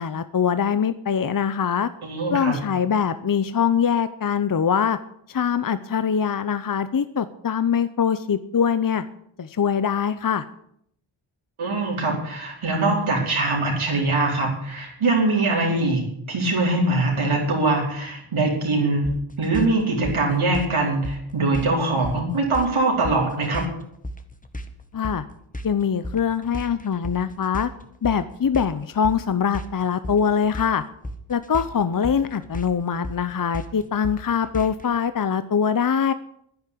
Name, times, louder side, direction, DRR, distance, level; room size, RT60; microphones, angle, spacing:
voice 1, 0.0-1.9 2.3-5.0 5.3-9.0 9.4-10.4 24.9-25.2 25.6-27.7 28.0-30.8 31.3-36.1, left 7 dB, 45° left, 12 dB, 0.8 m, -23 dB
voice 2, 2.0-2.6 11.6-16.0 16.3-19.1 19.4-23.7, right 2 dB, 80° right, -1 dB, 4.9 m, -22 dB
sound 1, 19.0-34.9, equal, 15° left, 1.7 m, -36 dB
10.5 x 10.5 x 8.5 m, 0.71 s
cardioid pair, 55°, 49 cm